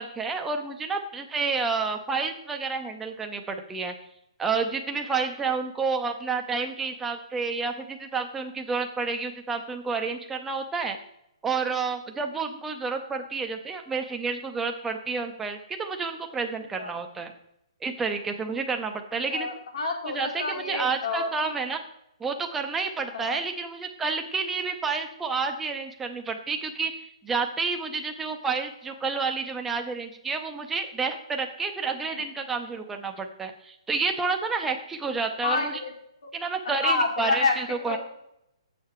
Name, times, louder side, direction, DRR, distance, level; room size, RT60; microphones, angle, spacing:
voice 1, 0.0-3.9 4.4-11.0 11.4-17.3 17.8-19.5 20.1-21.8 22.2-26.9 27.2-35.8 36.3-38.0, right 4 dB, 5° right, 4 dB, 0.6 m, -30 dB
voice 2, 19.3-21.3 23.1-23.4 35.4-35.9 36.2-36.3 36.6-37.6 37.8-38.0, left 3 dB, 70° left, 2 dB, 2.2 m, -28 dB
7.1 x 6.7 x 4.4 m, 0.80 s
hypercardioid pair, 165°, 3 cm